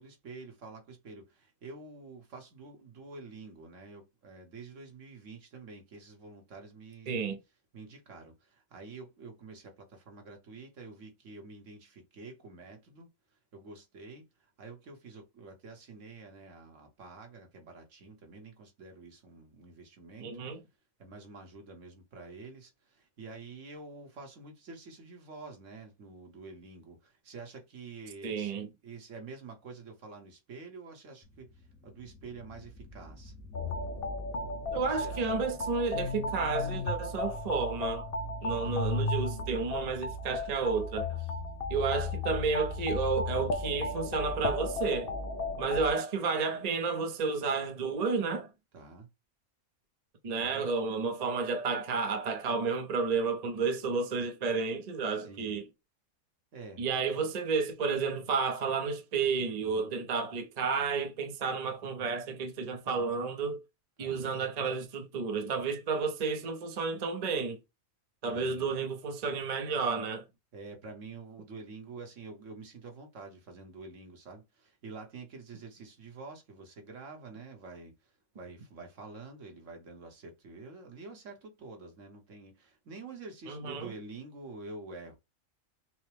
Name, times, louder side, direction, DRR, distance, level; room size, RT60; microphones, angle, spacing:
voice 1, 0.0-7.2 7.7-20.3 21.0-28.6 28.8-33.3 34.7-35.3 38.4-38.8 45.7-45.9 48.7-49.1 50.4-50.7 55.1-55.6 56.5-56.8 59.6-59.9 64.0-64.3 68.3-68.7 70.5-85.2, right 3 dB, 65° right, 1.4 m, -48 dB
voice 2, 7.1-7.4 20.2-20.6 28.2-28.7 34.7-38.1 38.4-41.1 41.7-45.1 45.6-48.5 50.2-55.6 56.8-63.6 64.0-67.6 68.2-70.2 83.5-83.9, right 4 dB, 40° right, 0.6 m, -31 dB
sound 1, 31.2-43.6, left 2 dB, 15° left, 0.6 m, -54 dB
sound 2, 33.5-45.9, left 2 dB, 55° left, 0.8 m, -34 dB
5.8 x 2.1 x 3.3 m
omnidirectional pair, 1.4 m